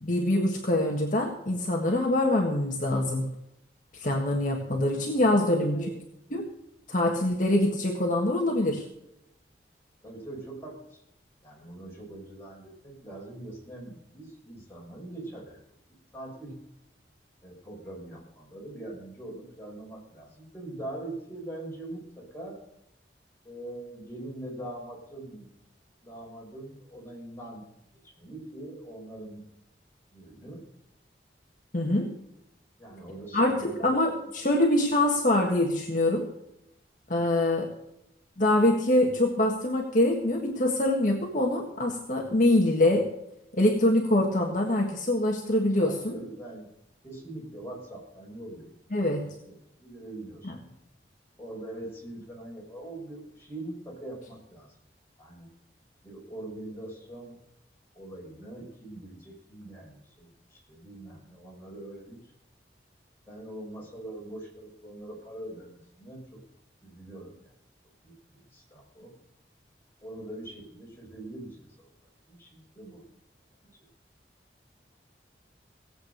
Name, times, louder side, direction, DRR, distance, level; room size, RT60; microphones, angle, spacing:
voice 1, 0.0-3.3 3.9-5.7 6.3-6.5 6.9-8.9 31.7-32.1 33.3-36.3 37.1-37.7 38.4-43.1 43.5-46.2 48.9-49.2 50.4-50.5, left 1 dB, 45° left, 1 dB, 1.7 m, -24 dB
voice 2, 4.9-5.9 10.0-11.0 11.4-15.6 16.1-16.6 17.4-22.6 23.4-25.5 26.0-27.7 28.0-29.4 30.1-30.6 32.8-33.8 34.4-34.5 45.8-46.7 47.0-49.2 49.5-50.7 51.4-54.7 55.2-55.5 56.0-57.4 57.9-62.3 63.3-66.4 66.8-67.5 68.0-69.1 70.0-71.9 72.3-73.0 73.6-73.8, right 1 dB, 15° left, -4 dB, 5.9 m, -42 dB
17.5 x 8.3 x 6.6 m, 0.82 s
head